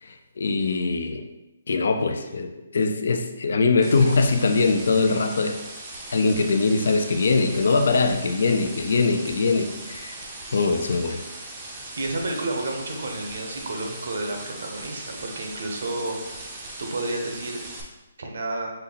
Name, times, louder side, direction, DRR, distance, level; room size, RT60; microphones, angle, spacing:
voice 1, 0.0-1.3 1.7-5.6 6.1-10.2 10.5-11.2, left 3 dB, 65° left, 6 dB, 0.5 m, -22 dB
sound 1, 3.8-17.8, right 2 dB, 20° right, 0.6 m, -39 dB
voice 2, 12.0-16.2 16.8-17.6 18.2-18.7, right 2 dB, 65° right, 2 dB, 0.9 m, -30 dB
5.4 x 2.1 x 3.9 m, 1.0 s
hypercardioid pair, 170°, 0 cm